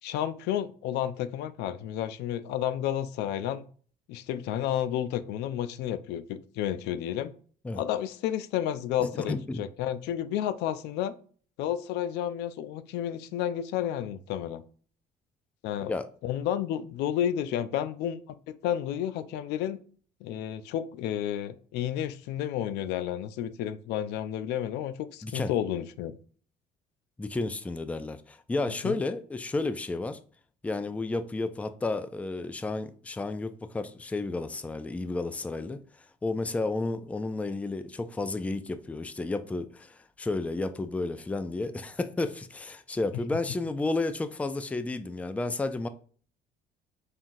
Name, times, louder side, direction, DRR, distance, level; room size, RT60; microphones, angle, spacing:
voice 1, 0.0-3.6 4.1-7.3 7.8-11.2 11.6-14.6 15.6-15.9 16.2-18.2 18.5-19.8 20.2-26.1 28.8-29.0, left 10 dB, 85° left, 0.4 m, -31 dB
voice 2, 9.0-9.6 15.8-16.1 25.2-25.5 27.2-30.2 30.6-35.8 36.2-45.9, left 3 dB, 10° left, 0.3 m, -32 dB
5.6 x 2.4 x 2.5 m
cardioid pair, 110°, 17 cm